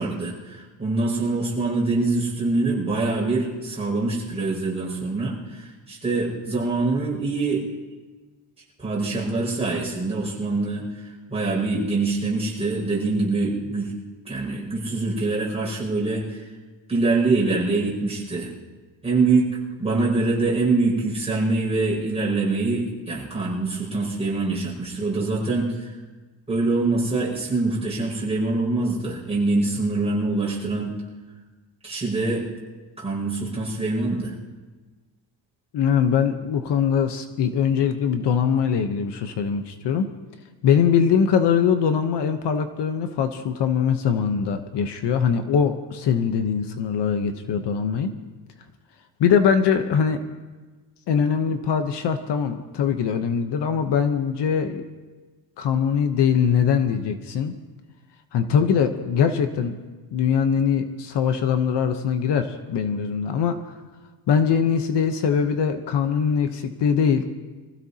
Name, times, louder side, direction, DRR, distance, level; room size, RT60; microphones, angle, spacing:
voice 1, 0.0-7.6 8.8-13.9 14.3-16.4 16.9-18.5 19.0-19.5 19.8-25.9 26.5-30.9 31.8-32.5 33.0-34.3, right 3 dB, 15° right, -6 dB, 5.4 m, -24 dB
voice 2, 35.7-40.1 40.6-48.1 49.2-50.2 51.1-54.8 55.6-57.5 58.3-59.8 60.1-63.6 64.3-67.3, left 7 dB, 60° left, 7 dB, 1.0 m, -22 dB
25.0 x 15.5 x 2.8 m, 1.3 s
cardioid pair, 160°, 46 cm